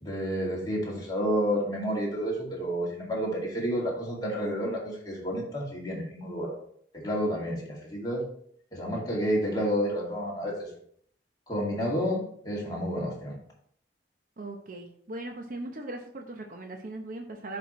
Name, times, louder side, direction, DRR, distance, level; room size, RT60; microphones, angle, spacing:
voice 1, 0.0-6.6 6.9-8.2 8.7-10.7 11.5-13.4, equal, 25° left, -3 dB, 2.1 m, -30 dB
voice 2, 14.4-17.6, right 2 dB, 50° right, 3 dB, 0.8 m, -39 dB
10.0 x 4.4 x 3.1 m, 0.63 s
head